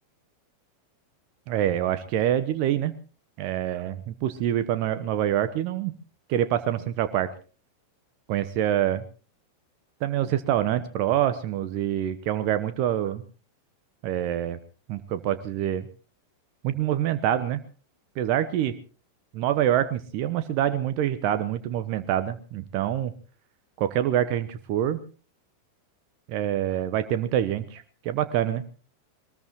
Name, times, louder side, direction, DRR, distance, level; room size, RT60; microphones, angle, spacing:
voice 1, 1.5-2.9 3.4-5.9 6.3-7.3 8.3-9.0 10.0-13.2 14.0-14.6 14.9-15.9 16.6-17.6 18.2-18.7 19.3-23.1 23.8-25.0 26.3-28.6, right 11 dB, 45° right, 11 dB, 1.0 m, -26 dB
22.5 x 19.5 x 3.1 m, 0.37 s
figure-of-eight pair, 90°, 0 cm